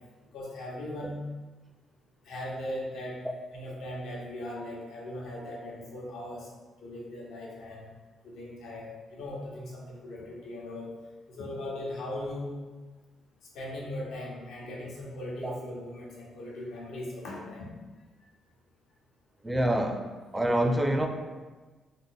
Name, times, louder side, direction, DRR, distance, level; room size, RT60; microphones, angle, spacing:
voice 1, 0.3-1.2 2.2-3.2 3.5-6.5 6.8-7.9 8.2-10.9 11.3-12.5 13.5-17.7, left 1 dB, 80° left, -4 dB, 0.9 m, -39 dB
voice 2, 19.4-20.0 20.3-21.1, right 1 dB, 10° right, 4 dB, 0.4 m, -26 dB
3.3 x 2.0 x 3.9 m, 1.3 s
cardioid pair, 90°, 0 cm